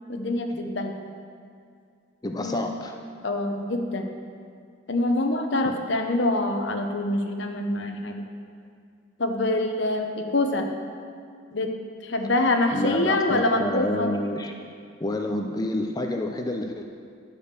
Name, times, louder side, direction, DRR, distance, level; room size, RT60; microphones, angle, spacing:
voice 1, 0.1-0.9 2.4-2.7 3.2-4.1 4.9-8.3 9.2-10.7 11.5-11.7 12.0-14.1, left 2 dB, 60° left, 4 dB, 0.8 m, -25 dB
voice 2, 2.2-2.9 5.6-5.8 12.7-14.5 15.0-16.8, left 1 dB, 20° left, 3 dB, 0.5 m, -29 dB
10.5 x 5.0 x 6.7 m, 2.3 s
head